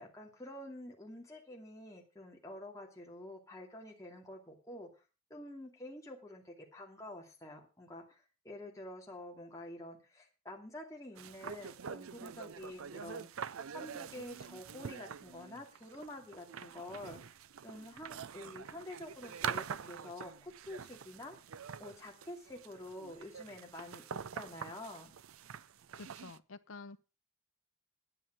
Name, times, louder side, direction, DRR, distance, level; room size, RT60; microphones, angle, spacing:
voice 1, 0.0-4.9 5.3-17.3 17.6-21.4 21.8-25.1, left 1 dB, 15° left, 0 dB, 2.5 m, -48 dB
sound 1, 11.2-26.4, right 7 dB, 80° right, 0.5 m, -45 dB
voice 2, 25.9-27.0, left 3 dB, 75° left, 12 dB, 0.9 m, -49 dB
10.0 x 9.3 x 6.0 m, 0.32 s
head